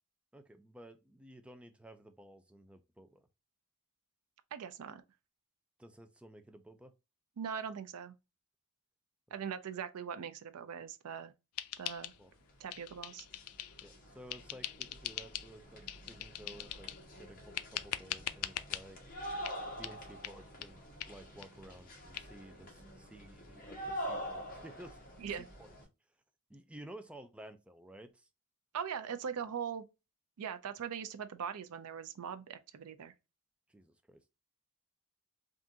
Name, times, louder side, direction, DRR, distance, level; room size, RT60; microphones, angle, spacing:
voice 1, 0.3-3.3 5.8-6.9 12.2-12.3 13.8-16.9 17.2-19.0 19.8-20.8 21.1-25.2 25.6-25.7 26.5-28.3 33.7-34.2, right 1 dB, 5° right, 0.4 m, -54 dB
voice 2, 4.5-5.0 7.4-8.1 9.3-11.3 11.8-12.1 12.6-13.3 25.2-25.4 28.7-29.9 30.4-33.1, right 7 dB, 75° right, 0.4 m, -41 dB
sound 1, 11.6-12.4 12.7-13.9 14.3-15.5 15.9-17.0 17.6-18.8 19.4-19.6 19.8-20.0 20.2-20.4 20.6-20.7 21.0-21.1 21.4-21.5 21.8-21.9 22.2-22.3, left 13 dB, 75° left, 0.4 m, -41 dB
sound 2, 12.8-12.9 13.1-25.8, equal, 40° left, 1.3 m, -46 dB
3.6 x 2.5 x 2.7 m
head